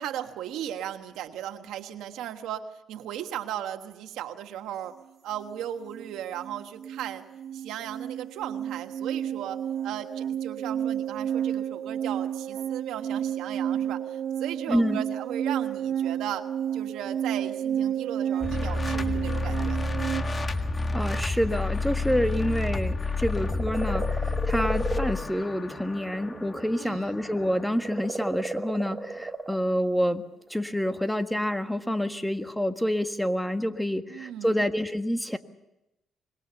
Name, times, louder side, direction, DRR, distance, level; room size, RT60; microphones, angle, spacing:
voice 1, 0.0-4.9 5.2-7.2 7.5-16.5 16.7-19.9 26.8-27.1 34.1-34.7, right 10 dB, 90° right, 7 dB, 1.4 m, -36 dB
sound 1, 5.4-5.6 5.9-20.2, right 9 dB, 65° right, 1.2 m, -31 dB
voice 2, 14.7-15.0 20.9-24.1 24.4-30.2 30.5-35.4, equal, 5° left, 8 dB, 1.6 m, -27 dB
sound 2, 18.4-28.4, left 3 dB, 30° left, 1.9 m, -30 dB
sound 3, 23.2-26.8 27.0-29.6 30.7-30.8, right 3 dB, 25° right, 2.0 m, -34 dB
25.5 x 22.0 x 7.0 m, 0.93 s
cardioid pair, 90°, 0 cm